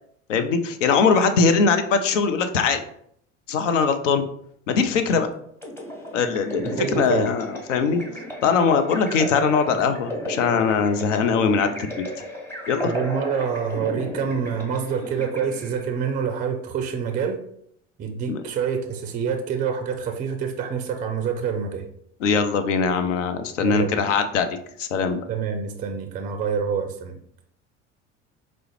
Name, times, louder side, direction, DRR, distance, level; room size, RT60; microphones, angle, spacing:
voice 1, 0.3-2.8 3.5-4.2 4.7-5.3 6.1-8.0 8.4-12.1 12.7-12.9 18.3-18.4 22.2-25.2, left 5 dB, 80° left, 8 dB, 0.5 m, -21 dB
sound 1, 5.6-16.0, left 1 dB, 5° left, 0.8 m, -34 dB
voice 2, 6.6-7.3 12.8-17.4 18.0-21.8 23.6-24.0 25.3-27.2, right 6 dB, 25° right, 6 dB, 0.4 m, -27 dB
4.6 x 2.0 x 2.9 m, 0.69 s
figure-of-eight pair, 65°, 37 cm